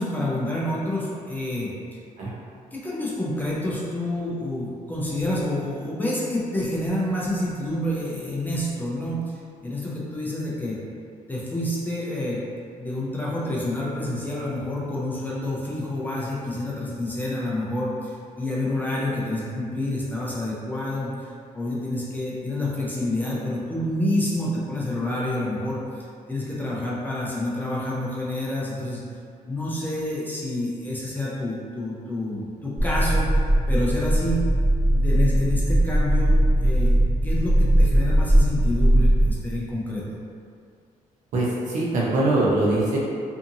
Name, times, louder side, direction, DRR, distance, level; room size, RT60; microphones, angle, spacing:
voice 1, 0.0-1.7 2.7-9.4 9.6-10.8 11.3-12.4 12.8-25.8 26.3-29.0 29.5-33.3 33.7-34.4 34.9-36.9 37.2-40.0, left 1 dB, 15° left, -7 dB, 0.3 m, -28 dB
sound 1, 32.8-39.3, right 1 dB, 5° right, 0.9 m, -19 dB
voice 2, 41.3-43.0, right 2 dB, 60° right, -5 dB, 0.6 m, -22 dB
2.7 x 2.5 x 2.6 m, 2.3 s
cardioid pair, 175°, 14 cm